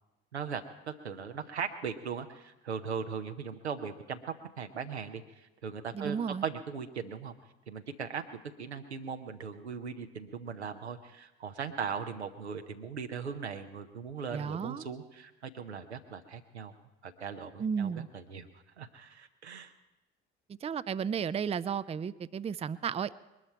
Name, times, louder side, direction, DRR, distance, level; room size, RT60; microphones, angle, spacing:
voice 1, 0.3-7.3 7.7-16.7 17.0-18.5 18.8-19.7, right 6 dB, 85° right, 6 dB, 0.8 m, -39 dB
voice 2, 5.9-6.4 14.3-14.8 17.6-18.1 20.6-23.1, right 7 dB, 20° right, 16 dB, 0.5 m, -33 dB
21.5 x 12.5 x 4.5 m, 1.0 s
figure-of-eight pair, 45°, 33 cm